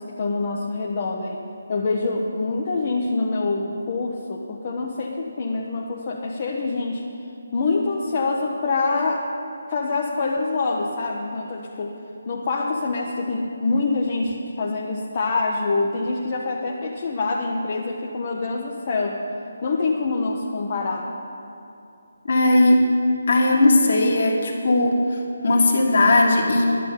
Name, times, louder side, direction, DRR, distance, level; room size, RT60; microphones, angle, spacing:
voice 1, 0.0-1.4 1.7-7.1 7.5-9.3 9.7-12.0 12.3-19.2 19.6-21.1, left 3 dB, 35° left, -2 dB, 0.9 m, -25 dB
voice 2, 22.2-22.9 23.3-26.8, left 2 dB, 55° left, 0 dB, 1.9 m, -18 dB
11.0 x 7.1 x 9.6 m, 2.7 s
figure-of-eight pair, 150°, 0 cm